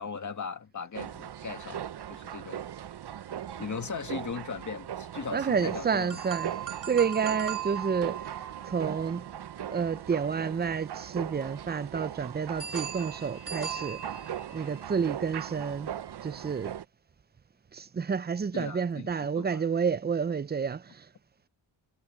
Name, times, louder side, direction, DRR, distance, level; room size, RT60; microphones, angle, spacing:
voice 1, 0.0-2.7 3.6-6.2 18.5-19.0 19.4-19.7, left 5 dB, 40° left, 1.9 m, -38 dB
sound 1, 0.9-16.8, right 10 dB, 55° right, 0.8 m, -39 dB
voice 2, 5.3-9.3 9.7-14.3 14.5-15.9 16.2-16.7 17.7-21.1, right 6 dB, 20° right, 0.5 m, -30 dB
sound 2, 6.1-10.2 12.6-14.9, right 9 dB, 40° right, 3.1 m, -39 dB
cardioid pair, 95°, 47 cm